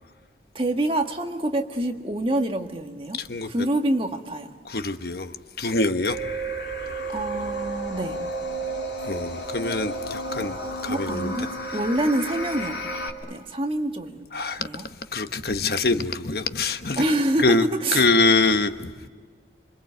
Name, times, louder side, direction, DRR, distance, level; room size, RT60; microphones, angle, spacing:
voice 1, 0.5-3.2 3.4-4.5 7.1-8.2 10.9-12.7 13.2-14.3 14.6-14.9 17.0-18.1, right 1 dB, 30° right, 1.6 m, -26 dB
voice 2, 3.2-3.5 4.6-5.3 5.6-6.2 9.0-11.4 14.3-14.6 15.1-17.0 17.4-17.6 17.9-19.1, left 3 dB, 55° left, 1.1 m, -24 dB
sound 1, 6.1-13.1, right 1 dB, 75° left, 2.8 m, -32 dB
26.0 x 26.0 x 8.1 m
head